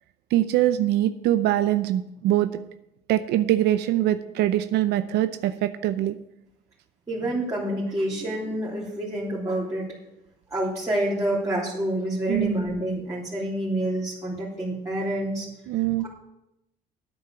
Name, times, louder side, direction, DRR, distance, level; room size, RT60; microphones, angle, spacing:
voice 1, 0.3-2.5 3.1-6.1 12.3-12.5 15.7-16.1, right 13 dB, 80° right, 11 dB, 0.6 m, -23 dB
voice 2, 7.1-9.9 10.5-15.5, right 1 dB, 15° right, -7 dB, 3.3 m, -28 dB
10.0 x 8.5 x 6.8 m, 0.86 s
cardioid pair, 110°, 17 cm